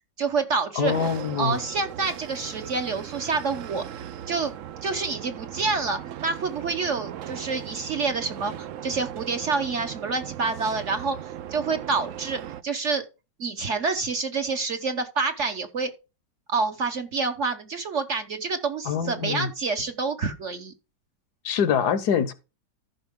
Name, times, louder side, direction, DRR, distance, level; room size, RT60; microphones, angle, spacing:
voice 1, 0.2-1.1 1.4-3.8 4.3-4.5 4.8-13.0 13.4-15.9 16.5-20.7, right 4 dB, 50° right, 1.1 m, -28 dB
voice 2, 0.8-1.6 18.9-19.5 21.4-22.3, left 7 dB, 65° left, 1.2 m, -24 dB
sound 1, 0.8-12.6, right 11 dB, 70° right, 0.7 m, -38 dB
14.0 x 5.6 x 3.6 m
omnidirectional pair, 1.9 m